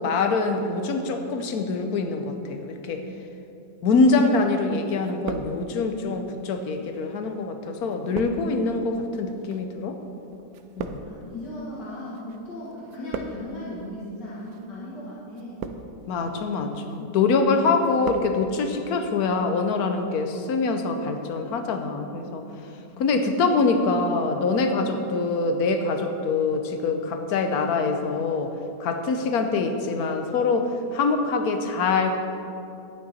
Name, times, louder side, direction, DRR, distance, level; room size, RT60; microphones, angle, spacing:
voice 1, 0.0-3.0 3.8-10.0 10.8-11.0 16.1-22.4 23.0-28.5 28.8-32.2, left 4 dB, 65° left, 6 dB, 1.2 m, -24 dB
voice 2, 3.0-3.3 10.2-10.3 11.0-15.6 17.0-17.3 22.2-22.4 22.9-23.1, left 1 dB, 85° left, -7 dB, 2.1 m, -38 dB
sound 1, 4.1-4.7 5.0-6.0 6.7-12.4 12.7-13.7 14.4-14.7 15.3-16.1 16.6-17.0 17.4-18.4 18.6-18.7, right 6 dB, 70° right, 1.0 m, -38 dB
11.0 x 9.1 x 4.2 m, 2.7 s
omnidirectional pair, 1.8 m